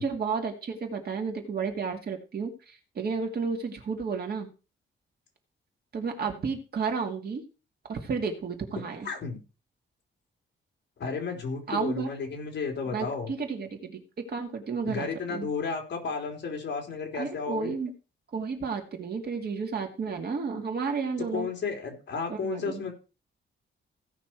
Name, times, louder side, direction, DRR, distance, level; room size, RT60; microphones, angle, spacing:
voice 1, 0.0-4.5 5.9-7.4 7.9-9.1 11.7-12.1 12.9-15.5 17.1-17.9 18.3-21.5 22.3-22.8, right 5 dB, 50° right, 3 dB, 2.3 m, -32 dB
voice 2, 9.0-9.4 11.0-13.3 14.9-17.7 21.3-22.9, left 5 dB, 55° left, 2 dB, 3.6 m, -33 dB
16.5 x 6.0 x 4.6 m, 0.33 s
wide cardioid pair, 165°, 21 cm